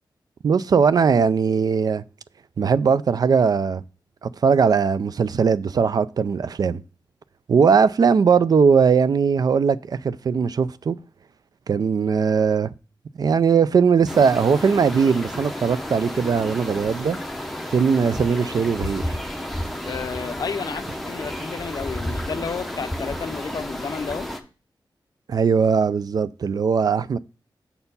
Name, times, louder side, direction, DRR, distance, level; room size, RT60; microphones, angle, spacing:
voice 1, 0.4-2.0 2.6-3.8 4.2-6.8 7.5-11.0 11.7-12.7 13.2-17.2 17.7-19.1 25.3-27.2, right 6 dB, 50° right, 0.3 m, -19 dB
sound 1, 14.1-24.4, left 1 dB, ahead, 0.7 m, -31 dB
voice 2, 19.9-24.3, left 5 dB, 55° left, 0.5 m, -31 dB
6.9 x 4.4 x 5.3 m
wide cardioid pair, 160°, 8 cm